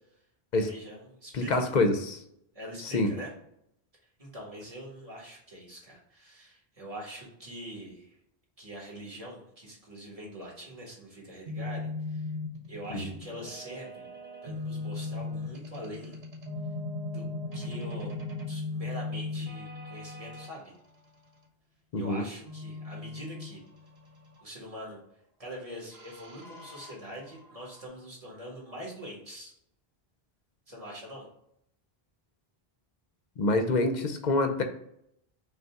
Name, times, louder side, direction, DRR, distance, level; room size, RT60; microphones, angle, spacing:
voice 1, 0.5-1.8 2.5-3.3 4.2-8.2 8.6-12.3 12.7-14.1 14.4-16.2 17.1-17.2 17.5-18.1 18.5-20.7 22.0-23.6 24.4-25.0 25.4-29.5 30.7-31.3, equal, 35° right, -2 dB, 1.6 m, -43 dB
voice 2, 1.3-2.2 2.9-3.1 12.9-13.1 21.9-22.2 33.4-34.6, left 2 dB, 55° left, 6 dB, 0.6 m, -26 dB
sound 1, 11.5-20.5 22.5-24.4 25.9-27.9, left 3 dB, 75° right, 1.1 m, -38 dB
5.2 x 2.3 x 3.5 m, 0.74 s
omnidirectional pair, 1.1 m